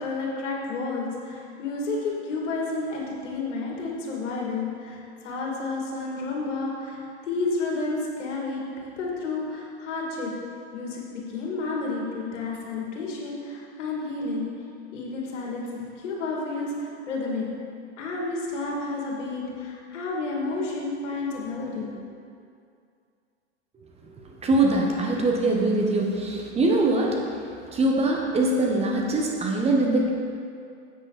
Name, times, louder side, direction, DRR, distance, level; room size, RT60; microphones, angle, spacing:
voice 1, 0.0-7.0 7.3-8.6 9.0-10.3 10.7-11.0 11.3-14.5 14.9-15.7 16.0-17.4 18.0-21.9, left 3 dB, 80° left, -2 dB, 2.6 m, -30 dB
voice 2, 23.7-30.1, right 2 dB, 20° right, -1 dB, 1.1 m, -23 dB
10.0 x 8.1 x 4.2 m, 2.4 s
supercardioid pair, 135°, 35 cm